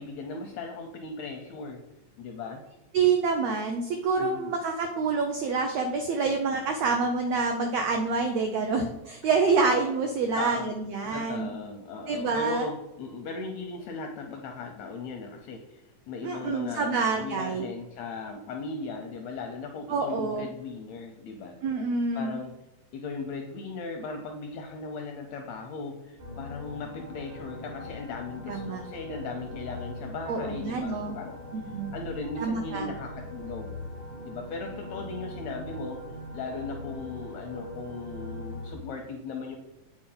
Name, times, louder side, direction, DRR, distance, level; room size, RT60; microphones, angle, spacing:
voice 1, 0.0-1.8 2.2-2.6 4.2-4.5 10.4-15.8 16.1-21.6 22.1-22.6 22.9-31.4 31.9-33.7 34.2-36.0 36.3-39.6, left 4 dB, 80° left, 4 dB, 1.6 m, -38 dB
voice 2, 2.9-11.5 12.1-12.7 16.2-17.7 19.9-20.5 21.6-22.4 28.5-28.8 30.3-31.2 31.5-31.9 32.4-32.9, right 4 dB, 85° right, 4 dB, 1.4 m, -27 dB
sound 1, 26.2-38.8, left 1 dB, 65° right, 2.7 m, -41 dB
8.5 x 4.4 x 3.8 m, 0.89 s
omnidirectional pair, 3.7 m